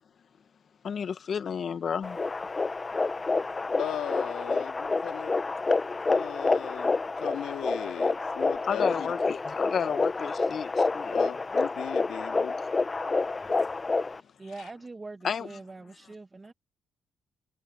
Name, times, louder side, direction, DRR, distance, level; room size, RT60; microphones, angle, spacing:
voice 1, 0.8-2.2 8.7-11.3 15.2-15.6, left 7 dB, 50° left, 1.6 m, -31 dB
sound 1, 2.0-14.2, left 3 dB, 25° left, 1.2 m, -28 dB
voice 2, 3.8-5.3 6.1-9.1 11.1-12.5 14.4-14.7, left 11 dB, 80° left, 2.4 m, -37 dB
voice 3, 14.4-16.5, right 3 dB, 25° right, 2.2 m, -43 dB
cardioid pair, 90°, 0 cm